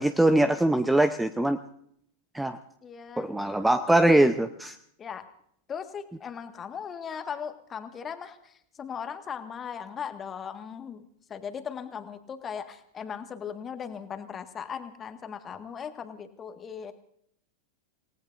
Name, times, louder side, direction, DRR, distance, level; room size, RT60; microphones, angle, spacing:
voice 1, 0.0-1.6 2.3-2.6 3.2-4.7, right 1 dB, 5° right, 11 dB, 0.7 m, -22 dB
voice 2, 2.8-3.3 5.0-5.2 5.7-16.9, left 7 dB, 25° left, 8 dB, 1.6 m, -38 dB
28.0 x 18.5 x 2.6 m, 0.68 s
figure-of-eight pair, 90°, 0 cm